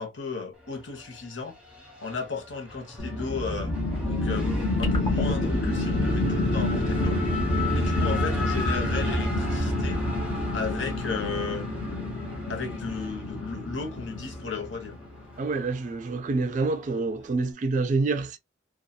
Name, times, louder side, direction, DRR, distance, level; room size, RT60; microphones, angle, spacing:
voice 1, 0.0-1.5 2.0-3.7 4.1-7.2 7.7-10.0 10.5-11.7 12.5-15.0, left 4 dB, 70° left, 0.9 m, -34 dB
Race car auto racing / Accelerating revving vroom, 0.5-17.5, left 3 dB, 5° right, 0.9 m, -39 dB
sound 1, 3.0-15.1, left 2 dB, 45° left, 0.5 m, -29 dB
sound 2, 4.8-11.3, right 1 dB, 25° left, 1.0 m, -31 dB
voice 2, 15.4-18.4, right 3 dB, 40° right, 0.3 m, -27 dB
2.7 x 2.3 x 2.3 m
head